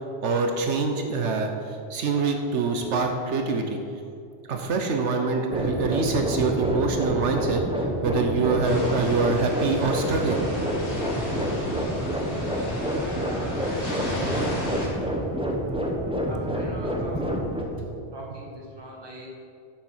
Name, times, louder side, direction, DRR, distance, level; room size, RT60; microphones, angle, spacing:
voice 1, 0.2-1.5 1.9-3.8 4.5-7.6 8.0-10.4 14.7-14.9, right 4 dB, 80° right, 4 dB, 1.1 m, -25 dB
sound 1, 5.5-17.6, equal, 5° right, 0.9 m, -28 dB
sound 2, 8.6-14.9, left 1 dB, 70° left, 2.4 m, -34 dB
voice 2, 13.0-14.3 16.3-17.5 18.1-19.3, equal, 20° right, -3 dB, 1.6 m, -41 dB
7.6 x 6.4 x 7.3 m, 2.5 s
omnidirectional pair, 1.2 m